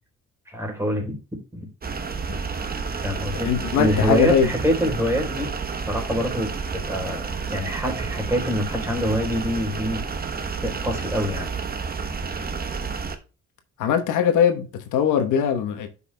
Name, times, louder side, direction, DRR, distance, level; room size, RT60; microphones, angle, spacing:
voice 1, 0.5-1.2 1.5-1.7 3.0-3.5 3.8-5.5 5.9-10.0 10.6-11.5, equal, 10° right, 3.7 m, -25 dB
sound 1, 1.8-13.2, right 5 dB, 30° right, 1.0 m, -30 dB
voice 2, 3.4-4.5 13.8-15.9, left 8 dB, 85° left, 1.1 m, -21 dB
10.0 x 5.7 x 2.2 m
cardioid pair, 90°, 30 cm